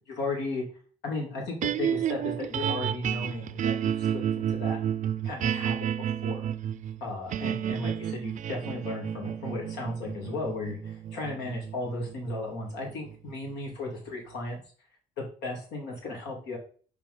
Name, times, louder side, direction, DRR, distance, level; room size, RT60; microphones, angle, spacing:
voice 1, 0.1-0.6 1.0-4.8 5.2-6.5 7.0-14.6 15.2-16.6, left 2 dB, 90° left, 0 dB, 2.9 m, -35 dB
sound 1, 1.6-13.9, right 9 dB, 50° right, 0.5 m, -31 dB
4.9 x 4.5 x 5.4 m, 0.42 s
cardioid pair, 110°, 17 cm